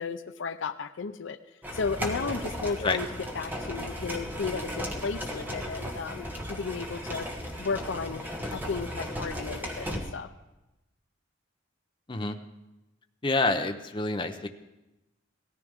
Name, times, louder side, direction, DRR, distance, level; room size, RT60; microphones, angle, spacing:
voice 1, 0.0-1.4 1.7-3.1 3.3-7.3 7.6-10.3, left 4 dB, 65° left, 11 dB, 0.5 m, -34 dB
sound 1, 1.6-10.0, equal, 10° right, 1.5 m, -36 dB
voice 2, 13.2-14.5, left 3 dB, 25° left, 6 dB, 0.7 m, -27 dB
18.0 x 14.0 x 3.6 m, 0.99 s
head